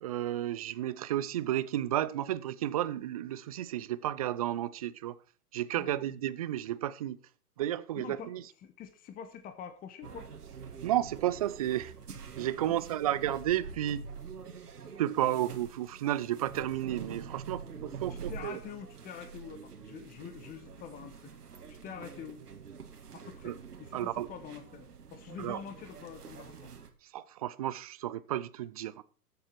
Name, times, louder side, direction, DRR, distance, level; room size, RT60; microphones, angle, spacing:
voice 1, 0.0-5.1 5.5-7.2 7.6-8.4 10.8-11.9 12.4-14.0 15.0-18.6 23.4-23.6 23.9-24.3 25.4-25.6 27.1-28.9, right 12 dB, 25° right, 0.4 m, -32 dB
voice 2, 8.0-8.3 8.6-10.3 12.5-12.8 15.3-15.4 18.1-21.3 21.7-22.4 23.1-26.7, left 8 dB, 20° left, 1.3 m, -46 dB
sound 1, 10.0-26.9, right 6 dB, 75° right, 2.2 m, -46 dB
13.5 x 7.8 x 4.7 m
figure-of-eight pair, 120°, 47 cm